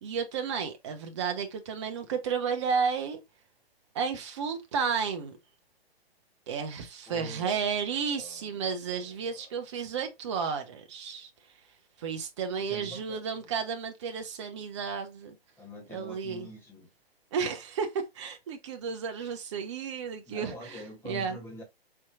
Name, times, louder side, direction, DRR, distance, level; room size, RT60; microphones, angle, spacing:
voice 1, 0.0-3.2 3.9-5.4 6.5-11.3 12.0-15.4 15.9-16.5 17.3-21.4, right 6 dB, 30° right, 0.7 m, -32 dB
voice 2, 7.1-7.6 8.0-8.6 9.0-9.5 12.7-13.5 15.6-16.9 20.3-21.6, left 1 dB, 10° left, 1.2 m, -45 dB
4.5 x 2.9 x 2.4 m
figure-of-eight pair, 125°, 31 cm